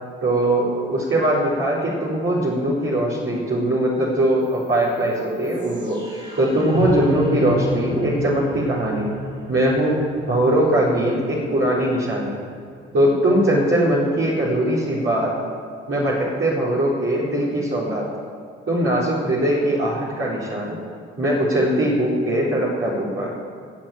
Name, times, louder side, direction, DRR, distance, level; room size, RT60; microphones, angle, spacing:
voice 1, 0.2-9.1 9.5-12.3 12.9-15.3 15.9-18.1 18.7-20.7 21.2-23.3, right 1 dB, 45° right, -8 dB, 4.1 m, -21 dB
sound 1, 4.4-14.4, equal, 20° right, 4.3 m, -33 dB
14.5 x 7.6 x 9.1 m, 2.2 s
hypercardioid pair, 40°, 30 cm